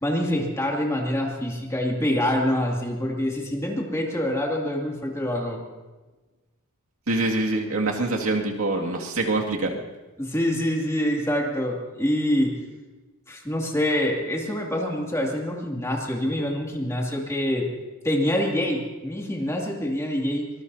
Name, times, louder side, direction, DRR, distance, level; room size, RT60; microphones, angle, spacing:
voice 1, 0.0-5.6 10.2-12.6 13.3-17.7 18.0-20.5, left 1 dB, 15° left, -1 dB, 2.4 m, -25 dB
voice 2, 7.1-9.7, right 2 dB, 85° right, -1 dB, 2.2 m, -25 dB
24.5 x 20.0 x 2.8 m, 1.2 s
head